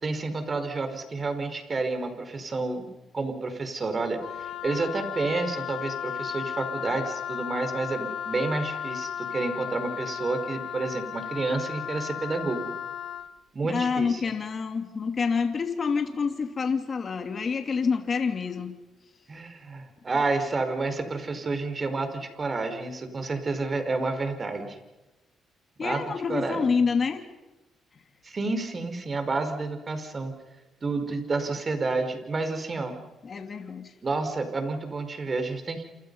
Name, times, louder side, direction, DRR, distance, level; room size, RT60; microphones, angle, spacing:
voice 1, 0.0-12.7 13.5-14.2 19.3-24.8 25.8-26.0 26.3-26.8 28.2-30.3 30.8-33.0 34.0-35.8, right 3 dB, 35° right, 7 dB, 4.9 m, -30 dB
Wind instrument woodwind instrument, 4.2-13.3, left 9 dB, 70° left, 1.5 m, -35 dB
voice 2, 13.6-18.7 25.8-27.2 33.2-33.9, left 5 dB, 40° left, 6 dB, 2.9 m, -27 dB
28.5 x 28.0 x 5.6 m, 1.1 s
cardioid pair, 90°, 0 cm